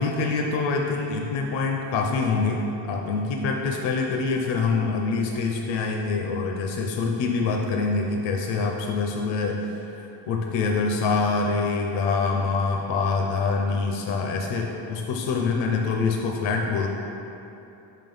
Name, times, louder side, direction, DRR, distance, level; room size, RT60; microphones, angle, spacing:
voice 1, 0.0-16.9, left 4 dB, 65° left, 1 dB, 0.6 m, -25 dB
5.5 x 3.8 x 5.3 m, 2.9 s
cardioid pair, 165°, 48 cm